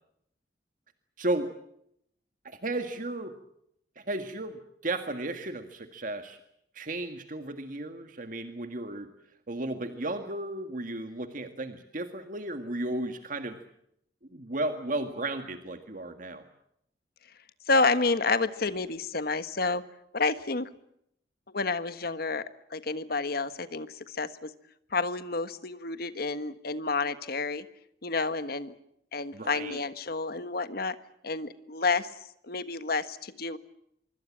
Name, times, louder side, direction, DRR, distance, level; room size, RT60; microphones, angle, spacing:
voice 1, 1.2-1.5 2.4-3.3 4.0-6.4 6.7-9.1 9.5-13.6 14.3-16.4 29.3-29.8, right 2 dB, 50° right, 7 dB, 1.8 m, -34 dB
voice 2, 17.7-19.8 20.1-20.7 21.5-22.4 22.7-24.5 24.9-27.6 28.0-28.7 29.1-30.9 31.2-32.1 32.4-33.6, left 3 dB, 60° left, 12 dB, 1.5 m, -29 dB
25.5 x 24.0 x 7.5 m, 0.75 s
head